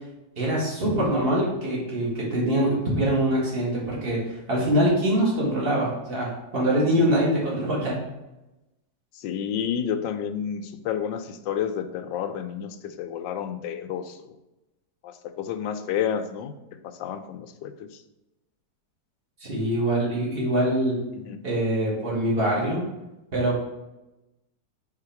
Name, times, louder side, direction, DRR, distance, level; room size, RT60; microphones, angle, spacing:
voice 1, 0.4-8.0 19.4-21.0 21.4-22.8 23.3-23.6, right 1 dB, 30° right, -4 dB, 2.0 m, -24 dB
voice 2, 9.1-14.2 15.0-16.5 16.8-18.0 21.1-21.4, left 8 dB, 75° left, 9 dB, 1.3 m, -30 dB
4.8 x 4.2 x 5.7 m, 0.98 s
omnidirectional pair, 2.0 m